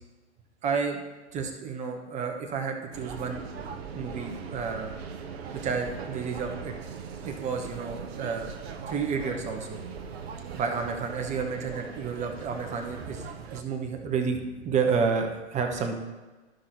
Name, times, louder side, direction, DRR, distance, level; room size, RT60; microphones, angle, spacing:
voice 1, 0.6-1.0 1.3-3.4 3.9-4.9 5.6-6.7 7.2-8.5 8.9-9.8 10.5-16.0, right 5 dB, 20° right, 4 dB, 0.9 m, -30 dB
sound 1, 2.9-13.6, right 6 dB, 60° right, 0.8 m, -40 dB
13.5 x 5.6 x 2.6 m, 1.2 s
figure-of-eight pair, 110°, 35 cm